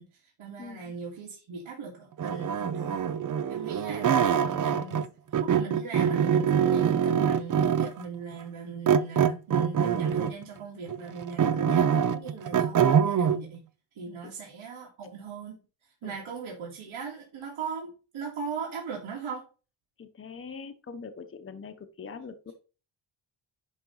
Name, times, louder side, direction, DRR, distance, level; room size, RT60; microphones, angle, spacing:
voice 1, 0.0-3.1 3.5-13.6 13.9-19.5, right 5 dB, 90° right, -3 dB, 2.5 m, -39 dB
voice 2, 0.6-0.9 14.2-14.3 16.0-16.2 20.0-22.5, left 5 dB, 25° left, 8 dB, 0.9 m, -43 dB
sound 1, 2.2-5.1 5.3-8.0 8.9-10.4 10.9-13.4, right 8 dB, 40° right, 0.6 m, -24 dB
10.5 x 3.7 x 5.5 m, 0.35 s
wide cardioid pair, 140°, 48 cm